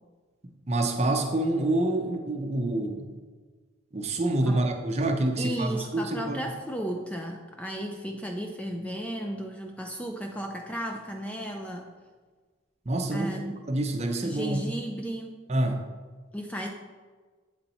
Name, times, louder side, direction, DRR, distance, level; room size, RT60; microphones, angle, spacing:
voice 1, 0.7-3.1 3.9-6.4 12.9-13.3 13.7-14.6 15.5-15.8, right 1 dB, 30° right, 4 dB, 0.6 m, -27 dB
voice 2, 5.4-11.9 13.1-13.6 14.2-15.5 16.3-16.7, equal, 5° left, 2 dB, 0.3 m, -34 dB
7.8 x 4.1 x 4.2 m, 1.4 s
head